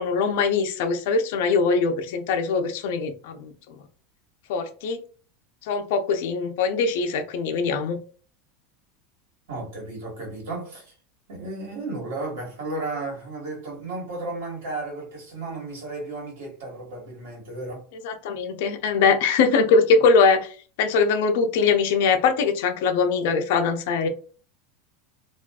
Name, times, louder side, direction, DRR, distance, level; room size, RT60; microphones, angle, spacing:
voice 1, 0.0-3.7 4.5-5.0 5.6-8.0 18.0-24.1, left 5 dB, 65° left, 0.5 m, -22 dB
voice 2, 9.5-10.9 11.3-17.8, right 2 dB, 80° right, 1.4 m, -34 dB
2.4 x 2.3 x 2.3 m
supercardioid pair, 160°, 0 cm